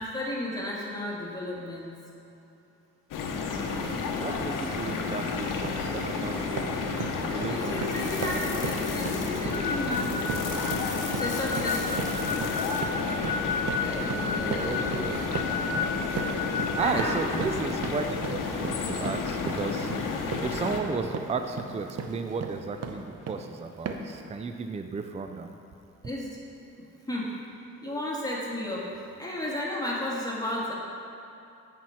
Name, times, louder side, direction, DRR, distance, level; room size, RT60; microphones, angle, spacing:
voice 1, 0.0-1.9 7.5-10.1 11.1-12.1 13.7-15.2 16.8-17.1 26.0-26.4 27.1-27.3 27.8-28.8 29.2-30.7, left 1 dB, 10° left, -5 dB, 1.6 m, -33 dB
sound 1, 3.1-20.8, left 4 dB, 85° left, 0.9 m, -31 dB
voice 2, 3.6-8.5 14.3-15.2 16.8-19.9 20.4-25.6, right 4 dB, 20° right, 7 dB, 0.4 m, -34 dB
sound 2, 4.9-5.1 5.4-5.9 6.2-23.5 23.9-24.2, right 5 dB, 55° right, 0.8 m, -37 dB
sound 3, 9.5-16.8, left 4 dB, 30° left, 1.2 m, -33 dB
8.6 x 4.6 x 5.6 m, 2.8 s
cardioid pair, 65°, 31 cm